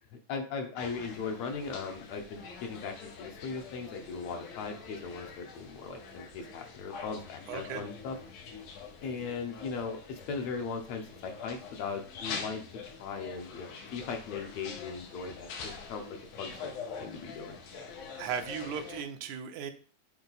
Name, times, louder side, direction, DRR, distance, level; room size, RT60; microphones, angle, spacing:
voice 1, 0.3-8.2 9.0-12.6 13.0-16.0 16.4-17.6, left 5 dB, 70° left, 4 dB, 1.9 m, -38 dB
sound 1, 0.8-19.0, left 5 dB, 90° left, 2.6 m, -45 dB
voice 2, 7.5-7.8 18.2-19.7, right 7 dB, 80° right, 7 dB, 2.1 m, -36 dB
7.2 x 4.3 x 4.0 m, 0.41 s
omnidirectional pair, 3.5 m